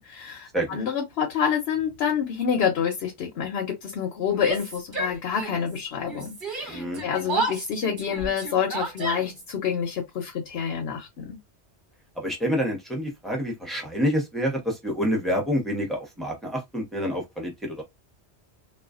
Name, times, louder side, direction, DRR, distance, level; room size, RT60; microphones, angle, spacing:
voice 1, 0.0-11.4, left 7 dB, 70° left, 0.9 m, -28 dB
Yell, 4.3-5.8 6.1-9.5, right 3 dB, 50° right, 1.1 m, -32 dB
voice 2, 6.7-7.0 12.2-17.8, equal, ahead, 0.9 m, -27 dB
2.4 x 2.3 x 2.4 m
omnidirectional pair, 1.1 m